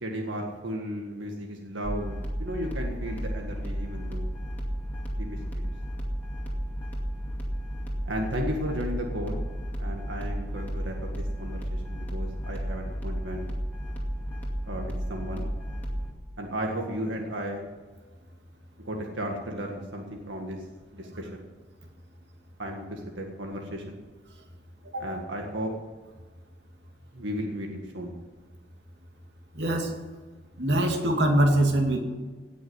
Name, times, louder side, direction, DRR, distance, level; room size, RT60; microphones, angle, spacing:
voice 1, 0.0-4.3 5.2-5.7 8.1-9.5 9.8-13.4 14.7-15.5 16.4-17.6 18.8-20.7 20.9-21.4 22.6-24.0 25.0-25.7 27.1-28.1, equal, 90° right, 1 dB, 1.8 m, -34 dB
sound 1, 1.8-16.1, equal, 10° left, 2.4 m, -33 dB
voice 2, 29.5-29.9 30.6-32.0, right 1 dB, 65° right, 2 dB, 2.4 m, -23 dB
17.5 x 6.3 x 9.7 m, 1.4 s
head